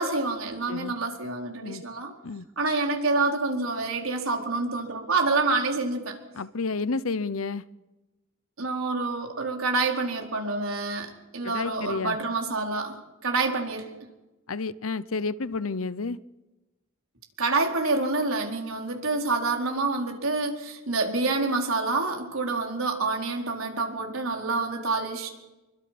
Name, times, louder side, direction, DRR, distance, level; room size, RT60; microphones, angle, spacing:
voice 1, 0.0-2.1 2.6-6.1 8.6-13.9 17.4-25.3, right 3 dB, 75° right, 4.5 m, -27 dB
voice 2, 6.3-7.6 11.4-12.2 14.5-16.2, left 4 dB, 75° left, 0.8 m, -30 dB
27.0 x 23.5 x 6.1 m
head